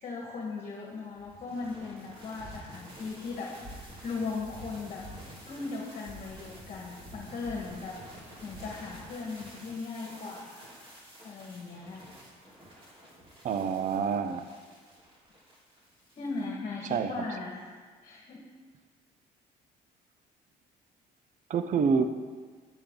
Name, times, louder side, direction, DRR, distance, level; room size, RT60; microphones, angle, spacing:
voice 1, 0.0-8.0 8.4-10.7 11.2-12.0 16.2-17.6 18.0-18.4, left 4 dB, 45° left, -2 dB, 1.7 m, -38 dB
sound 1, 1.2-16.4, equal, 30° right, 3.4 m, -49 dB
voice 2, 13.4-14.5 16.8-17.3 21.5-22.0, right 6 dB, 45° right, 10 dB, 0.6 m, -27 dB
10.5 x 10.0 x 3.9 m, 1.5 s
cardioid pair, 110°, 17 cm